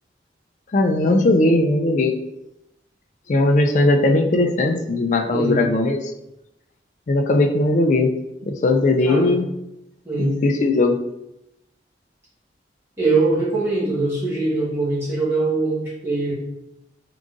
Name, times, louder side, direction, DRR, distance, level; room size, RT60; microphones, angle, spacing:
voice 1, 0.7-2.2 3.3-6.1 7.1-8.1 8.4-9.5 10.2-11.0, left 2 dB, 40° left, 5 dB, 0.3 m, -18 dB
voice 2, 5.3-5.6 9.0-9.4 10.0-10.4 13.0-16.3, right 3 dB, 15° right, -8 dB, 1.4 m, -22 dB
3.8 x 3.8 x 2.4 m, 0.89 s
head